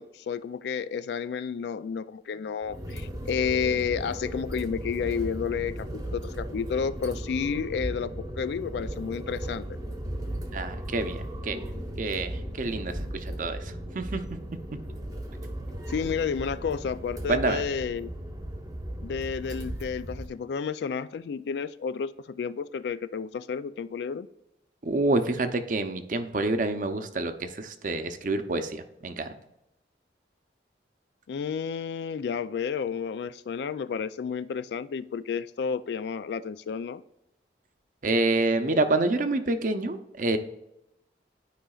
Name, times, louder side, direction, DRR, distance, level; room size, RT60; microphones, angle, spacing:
voice 1, 0.0-9.7 15.9-18.1 19.0-24.3 31.3-37.0, left 6 dB, 70° left, 15 dB, 0.3 m, -31 dB
sound 1, 2.6-20.3, right 1 dB, 20° right, 0.8 m, -36 dB
voice 2, 10.5-11.6 12.0-14.2 17.3-17.6 24.8-29.3 38.0-40.4, right 2 dB, 45° right, 9 dB, 0.6 m, -27 dB
11.5 x 5.0 x 2.4 m, 0.89 s
head